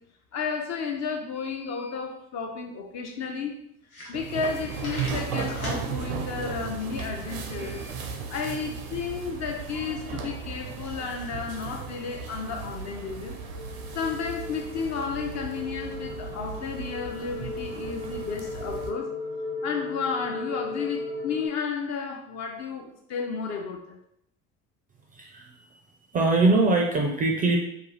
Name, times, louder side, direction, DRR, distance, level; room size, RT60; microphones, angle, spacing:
voice 1, 0.3-3.5 4.1-7.9 8.3-13.4 13.9-19.1 19.6-24.0, left 5 dB, 40° left, 3 dB, 0.5 m, -32 dB
sound 1, 2.4-2.5 2.8-2.9 3.4-3.5 3.8-4.5 4.8-5.8, left 1 dB, 90° left, 0.8 m, -39 dB
sound 2, 4.1-18.9, right 5 dB, 80° right, 0.5 m, -36 dB
sound 3, 11.8-21.5, left 3 dB, 75° left, 1.1 m, -37 dB
voice 2, 25.1-25.8 26.1-27.6, right 3 dB, 20° right, 0 dB, 0.4 m, -22 dB
2.6 x 2.3 x 3.1 m, 0.76 s
figure-of-eight pair, 60°, 42 cm